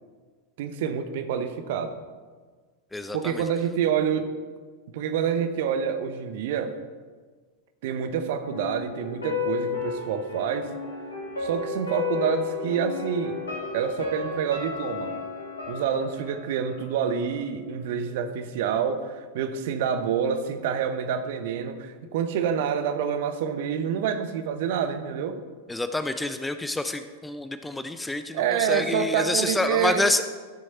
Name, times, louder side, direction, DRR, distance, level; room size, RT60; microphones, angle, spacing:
voice 1, 0.6-1.9 3.1-4.3 4.9-6.8 7.8-10.7 11.4-13.4 13.7-15.1 15.7-25.4 28.3-30.0, right 7 dB, 50° right, 8 dB, 0.9 m, -27 dB
voice 2, 2.9-3.4 25.7-30.2, left 2 dB, 5° left, 9 dB, 0.5 m, -28 dB
sound 1, 8.4-17.4 17.7-17.8, left 4 dB, 75° left, 2.2 m, -33 dB
13.0 x 6.4 x 4.2 m, 1.5 s
figure-of-eight pair, 90°, 0 cm